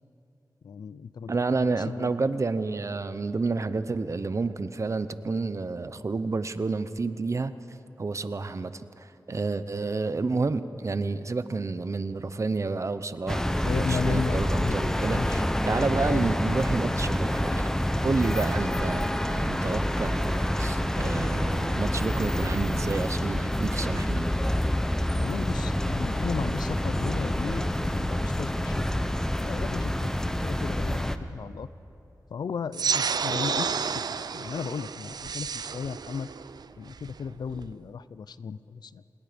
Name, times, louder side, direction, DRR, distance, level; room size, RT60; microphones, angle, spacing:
voice 1, 0.6-2.1 13.6-15.4 16.0-16.3 25.2-28.9 29.3-30.1 30.4-31.7 32.3-36.3 36.8-39.0, left 6 dB, 80° left, 16 dB, 0.5 m, -35 dB
voice 2, 1.3-7.5 8.0-24.3, right 3 dB, 45° right, 13 dB, 0.8 m, -30 dB
sound 1, 13.3-31.2, left 1 dB, 5° left, 0.9 m, -27 dB
sound 2, 32.7-37.7, right 6 dB, 75° right, 0.5 m, -31 dB
27.5 x 20.5 x 5.2 m, 2.9 s
wide cardioid pair, 75°, 7 cm